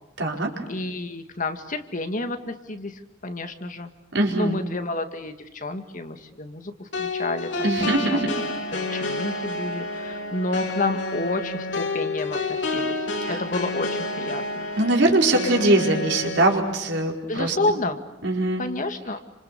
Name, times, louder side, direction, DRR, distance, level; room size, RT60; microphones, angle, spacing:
voice 1, 0.2-0.5 4.1-4.6 7.6-8.3 8.9-9.1 13.2-13.4 14.8-17.6 18.2-18.6, right 2 dB, 65° right, 1 dB, 4.9 m, -22 dB
voice 2, 0.7-3.9 4.4-8.3 8.9-13.0 13.3-14.7 17.3-18.0 18.6-19.2, left 2 dB, 45° left, 7 dB, 2.0 m, -30 dB
sound 1, 6.9-16.5, left 2 dB, 70° left, 3.6 m, -29 dB
29.5 x 27.0 x 7.0 m, 0.96 s
head